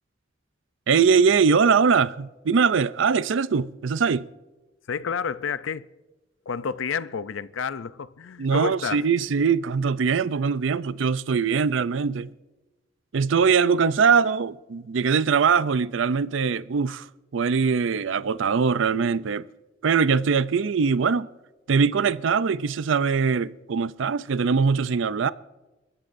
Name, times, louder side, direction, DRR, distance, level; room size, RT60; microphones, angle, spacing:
voice 1, 0.9-4.3 8.4-12.3 13.1-17.0 17.3-19.5 19.8-21.3 21.7-25.3, right 5 dB, 80° right, 0.5 m, -22 dB
voice 2, 4.9-5.9 6.5-9.1, left 6 dB, 85° left, 0.5 m, -30 dB
29.5 x 14.0 x 2.6 m
head